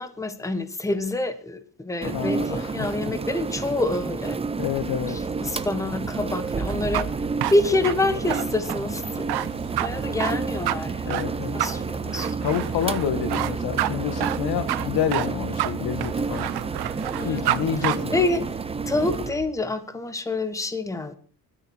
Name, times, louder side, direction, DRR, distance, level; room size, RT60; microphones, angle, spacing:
voice 1, 0.0-4.4 5.1-7.1 7.5-9.5 9.8-11.1 11.5-12.4 17.2-18.4 18.9-21.1, left 2 dB, 10° left, 1.4 m, -27 dB
voice 2, 2.0-3.0 4.6-5.2 11.1-11.6 12.4-16.5 17.2-18.1, left 9 dB, 85° left, 1.8 m, -28 dB
sound 1, 2.0-19.3, right 4 dB, 15° right, 0.6 m, -30 dB
sound 2, 5.2-19.5, right 8 dB, 50° right, 1.1 m, -39 dB
sound 3, 6.7-17.6 17.8-18.0, right 14 dB, 85° right, 1.0 m, -28 dB
21.0 x 13.0 x 4.5 m
cardioid pair, 170°, 38 cm